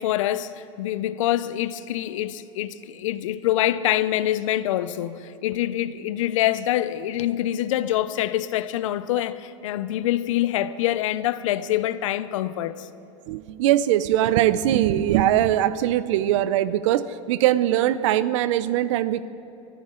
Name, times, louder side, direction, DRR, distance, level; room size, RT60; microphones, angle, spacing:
voice 1, 0.0-12.9, left 13 dB, 85° left, 0.6 m, -25 dB
voice 2, 13.3-19.3, right 12 dB, 70° right, 0.6 m, -21 dB
21.0 x 13.5 x 3.8 m
supercardioid pair, 140°, 16 cm